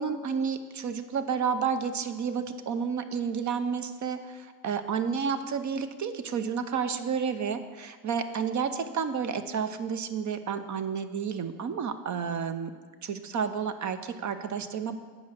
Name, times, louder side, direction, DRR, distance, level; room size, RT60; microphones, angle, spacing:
voice 1, 0.0-12.7 13.0-15.0, right 6 dB, 40° right, 9 dB, 0.7 m, -31 dB
8.1 x 4.8 x 6.4 m, 1.5 s
hypercardioid pair, 70°, 46 cm